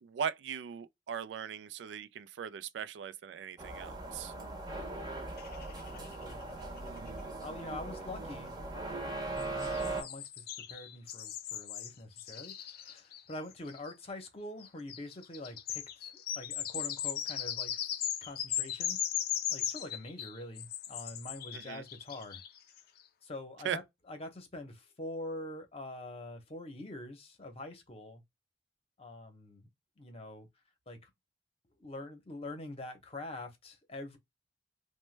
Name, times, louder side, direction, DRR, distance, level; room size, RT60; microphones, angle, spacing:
voice 1, 0.0-4.3 21.7-21.8 23.6-23.8, right 7 dB, 85° right, 0.3 m, -39 dB
sound 1, 3.6-10.0, right 2 dB, 25° right, 0.7 m, -39 dB
sound 2, 5.4-6.4 6.8-6.9 7.1-7.2 9.4-13.9 14.6-22.8, left 10 dB, 55° left, 0.4 m, -38 dB
voice 2, 5.9-6.6 7.4-8.6 9.4-17.9 18.2-19.0 19.5-22.4 23.2-28.2 29.0-29.7 30.0-30.5 30.9-31.1 31.8-34.2, left 1 dB, 35° left, 0.8 m, -45 dB
3.0 x 2.2 x 3.2 m
head